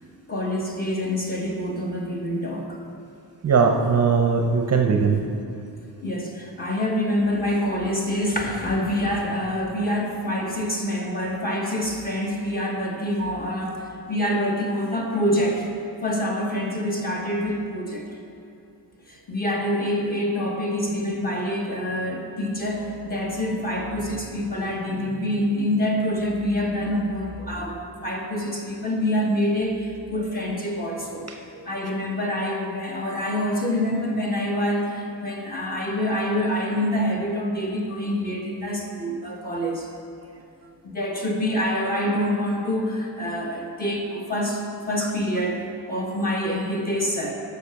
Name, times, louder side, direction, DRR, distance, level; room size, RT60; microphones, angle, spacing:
voice 1, 0.3-2.8 5.2-5.3 6.0-15.7 16.0-18.0 19.1-31.3 31.6-39.9 40.8-47.3, left 1 dB, 20° left, -1 dB, 1.3 m, -26 dB
voice 2, 3.4-5.2 27.5-27.8 31.5-31.7 45.0-45.1, right 5 dB, 35° right, 3 dB, 0.6 m, -21 dB
10.0 x 6.8 x 5.7 m, 2.7 s
wide cardioid pair, 165°, 43 cm